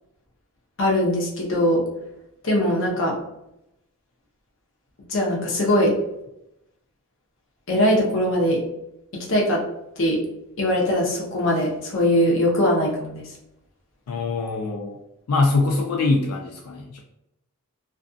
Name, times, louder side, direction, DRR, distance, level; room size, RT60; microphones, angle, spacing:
voice 1, 0.8-1.8 2.4-3.2 5.1-5.9 7.7-8.6 9.3-9.6 10.0-10.2 10.6-13.2, left 1 dB, 60° left, -2 dB, 0.7 m, -21 dB
voice 2, 14.1-15.0 15.3-17.0, left 3 dB, 90° left, 1 dB, 0.4 m, -23 dB
2.5 x 2.5 x 2.3 m, 0.85 s
head